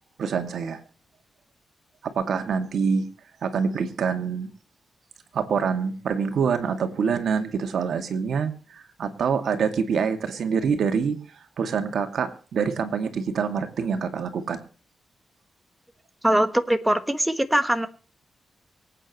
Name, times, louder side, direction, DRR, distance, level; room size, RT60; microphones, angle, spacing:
voice 1, 0.2-0.8 2.0-3.1 3.4-4.5 5.3-11.2 11.6-14.6, right 6 dB, 70° right, 7 dB, 2.2 m, -26 dB
voice 2, 16.2-17.9, right 1 dB, 5° right, 8 dB, 1.3 m, -22 dB
24.5 x 9.0 x 3.1 m, 0.40 s
wide cardioid pair, 145°, 0 cm